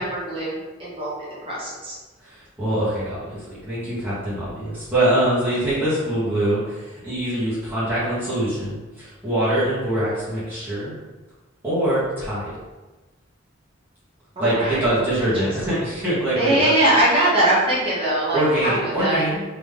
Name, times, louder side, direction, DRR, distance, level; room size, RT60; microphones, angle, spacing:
voice 1, 0.0-2.0 14.3-14.8 15.7-15.8 16.3-19.2, right 1 dB, 25° right, -8 dB, 1.4 m, -22 dB
voice 2, 2.2-10.9 11.6-12.5 14.4-16.7 18.3-19.4, right 1 dB, 10° right, -12 dB, 1.3 m, -23 dB
3.5 x 2.9 x 3.5 m, 1.2 s
head